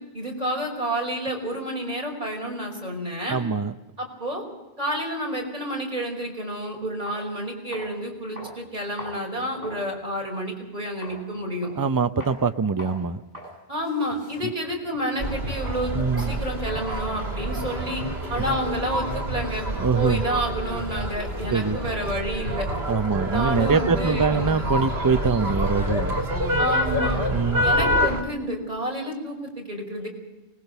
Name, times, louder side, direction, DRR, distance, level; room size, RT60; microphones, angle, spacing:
voice 1, 0.1-3.4 4.0-4.4 4.8-11.7 13.7-18.0 18.3-19.7 19.9-22.7 23.3-24.6 26.6-27.2 27.6-30.1, equal, 40° right, 0 dB, 5.5 m, -29 dB
voice 2, 3.3-3.7 11.8-13.2 15.9-16.4 19.8-20.2 21.5-21.8 22.9-26.2 27.3-27.6, right 5 dB, 25° right, 11 dB, 0.6 m, -23 dB
sound 1, 7.1-7.2 7.7-8.0 8.4-9.9 10.3-10.4 11.0-11.2 11.6-11.9 12.2-12.4 12.8-13.0 13.3-13.5 13.8-15.8, left 1 dB, 60° right, 8.3 m, -41 dB
sound 2, 15.2-28.2, equal, 75° right, 2.8 m, -27 dB
24.5 x 20.5 x 6.8 m, 1.1 s
omnidirectional pair, 1.0 m